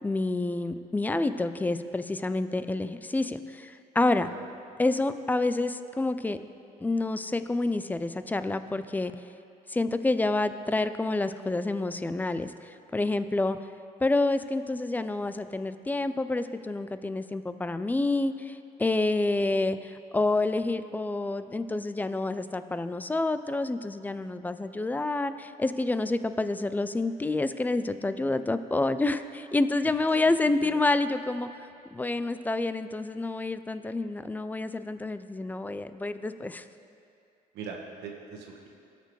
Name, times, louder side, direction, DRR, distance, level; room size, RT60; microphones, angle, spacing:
voice 1, 0.0-4.3 4.8-6.4 6.8-9.1 9.7-13.6 14.0-31.5 31.9-36.6, left 2 dB, 10° left, 11 dB, 0.3 m, -28 dB
voice 2, 4.2-4.5 29.8-30.8 37.5-38.7, right 5 dB, 80° right, 0 dB, 1.3 m, -42 dB
18.0 x 6.8 x 3.2 m, 2.5 s
cardioid pair, 110°, 17 cm